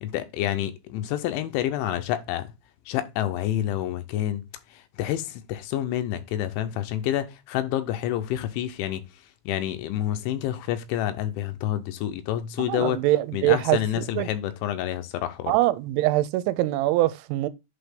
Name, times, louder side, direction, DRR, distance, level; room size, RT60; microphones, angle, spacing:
voice 1, 0.0-2.5 2.9-4.4 4.7-9.0 9.5-13.1 13.3-15.6, left 12 dB, 85° left, 3.0 m, -28 dB
voice 2, 12.7-14.3 15.5-17.5, right 16 dB, 85° right, 2.9 m, -23 dB
8.0 x 2.8 x 5.1 m
omnidirectional pair, 5.3 m